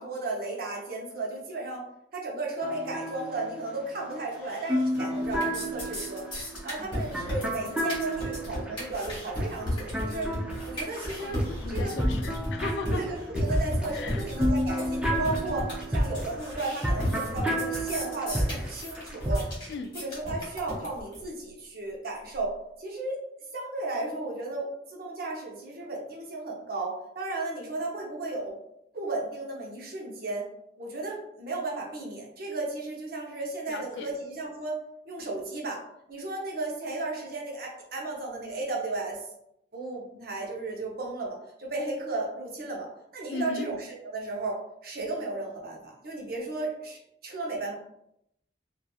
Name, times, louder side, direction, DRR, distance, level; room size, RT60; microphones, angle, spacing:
voice 1, 0.0-1.9 2.1-10.3 10.7-11.4 11.7-11.9 12.9-19.5 19.9-23.2 23.5-28.6 28.9-30.5 30.8-35.8 36.1-39.3 39.7-47.7, right 2 dB, 60° right, -1 dB, 0.7 m, -34 dB
sound 1, 2.6-11.4 11.7-19.5, equal, 5° right, 0.4 m, -31 dB
sound 2, 4.5-5.0 5.2-21.2, left 1 dB, 30° left, 1.2 m, -34 dB
voice 2, 11.2-13.0 13.9-14.2 19.7-19.9 33.7-34.1 43.3-43.7, left 3 dB, 90° left, 7 dB, 0.3 m, -36 dB
2.8 x 2.4 x 2.3 m, 0.81 s
head